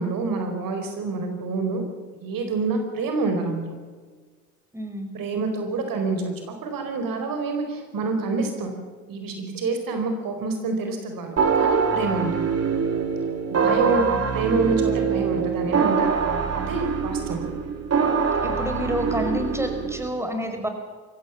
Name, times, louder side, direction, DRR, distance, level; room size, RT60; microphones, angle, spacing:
voice 1, 0.0-1.9 2.2-3.7 5.1-8.7 9.1-12.5 13.5-17.5, right 3 dB, 60° right, 6 dB, 4.8 m, -27 dB
voice 2, 4.7-5.1 13.6-14.0 18.4-20.7, equal, 5° right, 6 dB, 5.1 m, -29 dB
sound 1, 11.4-20.1, right 6 dB, 40° right, 3.2 m, -24 dB
22.5 x 17.0 x 7.3 m, 1.5 s
hypercardioid pair, 60°, 39 cm